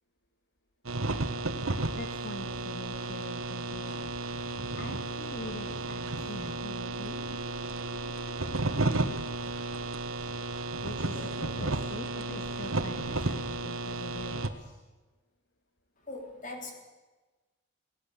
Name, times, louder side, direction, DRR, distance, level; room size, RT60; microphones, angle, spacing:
sound 1, 0.8-14.5, right 2 dB, 85° right, 1.5 m, -33 dB
voice 1, 1.9-4.1 4.5-7.2 10.8-14.7, left 1 dB, 55° left, 4 dB, 2.0 m, -43 dB
voice 2, 16.1-16.7, left 2 dB, 40° left, 2 dB, 3.9 m, -41 dB
18.5 x 18.5 x 8.5 m, 1.2 s
head